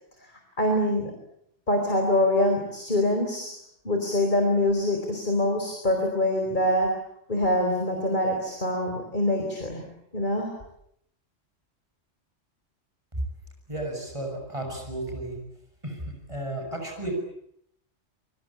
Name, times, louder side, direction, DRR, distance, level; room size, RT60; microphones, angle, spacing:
voice 1, 0.6-1.1 1.7-3.5 3.8-6.9 7.3-9.9 10.1-10.5, left 1 dB, 40° left, 3 dB, 4.6 m, -24 dB
voice 2, 13.7-15.4 15.8-16.0 16.3-17.1, right 1 dB, 25° right, 2 dB, 7.2 m, -33 dB
27.5 x 24.0 x 8.7 m, 0.72 s
omnidirectional pair, 1.2 m